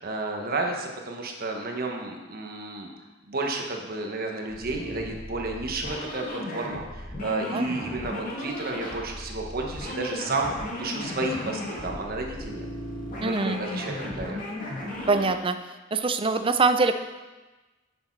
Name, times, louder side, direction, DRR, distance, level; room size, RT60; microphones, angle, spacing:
voice 1, 0.0-2.9 3.3-10.5 10.8-12.7 13.2-14.5, right 2 dB, 50° right, 2 dB, 1.2 m, -31 dB
sound 1, 4.5-15.3, left 1 dB, 40° left, 2.3 m, -36 dB
voice 2, 13.2-13.6 15.1-15.6 15.9-16.9, right 3 dB, 25° right, 9 dB, 0.5 m, -23 dB
9.7 x 6.8 x 4.6 m, 1.2 s
head